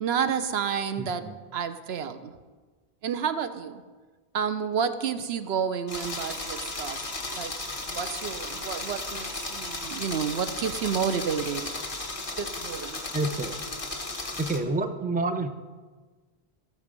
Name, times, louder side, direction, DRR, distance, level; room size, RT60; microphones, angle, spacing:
voice 1, 0.0-1.2 1.5-2.3 3.0-3.8 4.3-7.0 7.3-7.6 7.9-11.7 12.4-13.0, right 7 dB, 80° right, 10 dB, 1.0 m, -30 dB
voice 2, 1.0-1.3 13.1-13.5 14.3-15.5, right 2 dB, 10° right, 7 dB, 0.5 m, -28 dB
sound 1, 5.9-14.6, left 2 dB, 35° left, 1.4 m, -35 dB
16.5 x 6.8 x 5.3 m, 1.4 s
omnidirectional pair, 1.1 m